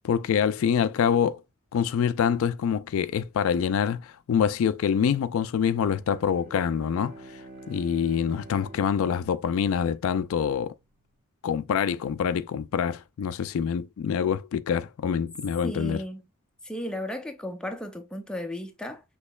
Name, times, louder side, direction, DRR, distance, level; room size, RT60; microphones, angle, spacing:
voice 1, 0.0-1.4 1.7-7.1 7.7-10.7 11.4-16.0, left 7 dB, 70° left, 0.3 m, -25 dB
Bowed string instrument, 5.9-10.4, right 2 dB, 40° right, 1.3 m, -48 dB
voice 2, 15.6-16.2 16.6-19.0, left 1 dB, 5° left, 0.5 m, -34 dB
6.2 x 3.0 x 2.3 m
head